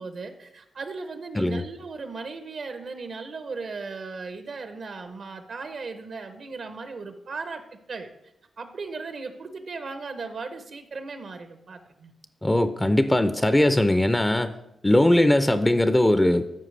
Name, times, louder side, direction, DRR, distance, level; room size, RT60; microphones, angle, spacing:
voice 1, 0.0-7.6 7.9-8.1 8.6-12.1, right 4 dB, 65° right, 8 dB, 0.6 m, -37 dB
voice 2, 12.4-14.5 14.8-16.5, left 1 dB, 15° left, 10 dB, 0.4 m, -20 dB
13.0 x 4.7 x 3.2 m, 0.84 s
cardioid pair, 75°, 0 cm